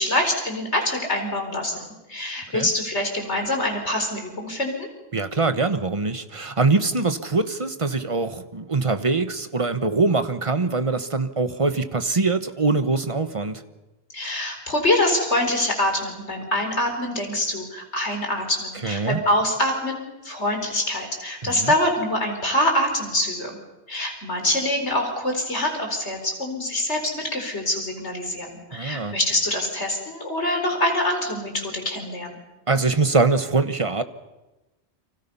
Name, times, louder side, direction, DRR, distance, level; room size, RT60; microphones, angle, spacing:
voice 1, 0.0-4.9 14.1-23.5 23.9-32.4, left 1 dB, 90° left, 3 dB, 4.8 m, -25 dB
voice 2, 5.1-13.6 18.8-19.2 21.4-21.7 28.7-29.2 32.7-34.0, right 3 dB, 30° right, 10 dB, 1.2 m, -23 dB
30.0 x 25.0 x 5.6 m, 1.0 s
omnidirectional pair, 1.1 m